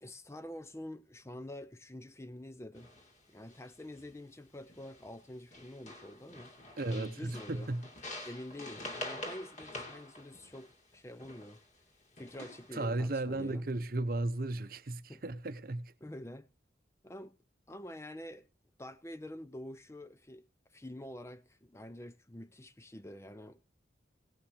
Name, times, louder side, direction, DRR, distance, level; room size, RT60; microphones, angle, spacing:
voice 1, 0.0-2.9 3.3-6.5 6.9-7.7 8.2-11.6 12.2-13.7 15.1-15.2 16.0-16.5 17.0-17.4 17.7-18.5 18.8-23.8, left 1 dB, 15° left, 0.5 m, -47 dB
sound 1, 2.7-3.1 3.5-4.1 4.7-5.2 5.5-11.7 12.2-12.8, left 1 dB, 40° left, 2.6 m, -46 dB
voice 2, 6.8-7.8 8.2-8.3 12.7-15.9, right 2 dB, 50° right, 0.8 m, -35 dB
17.5 x 5.8 x 6.4 m
head